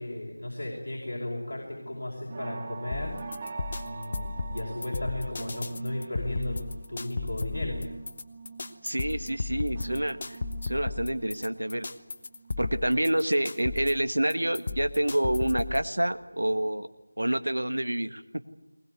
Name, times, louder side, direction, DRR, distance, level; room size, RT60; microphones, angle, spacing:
voice 1, 0.0-3.2 3.8-6.6 6.9-7.8, left 1 dB, 55° left, -3 dB, 5.3 m, -35 dB
sound 1, 1.8-14.0 14.4-16.0 16.3-16.7 17.0-17.1, right 4 dB, 20° right, 1.0 m, -45 dB
sound 2, 2.9-15.9, left 3 dB, 30° left, 1.0 m, -35 dB
voice 2, 8.8-11.9 12.6-16.9 17.2-18.5, right 1 dB, 80° right, 10 dB, 1.6 m, -28 dB
20.5 x 20.0 x 9.4 m, 0.97 s
figure-of-eight pair, 170°, 0 cm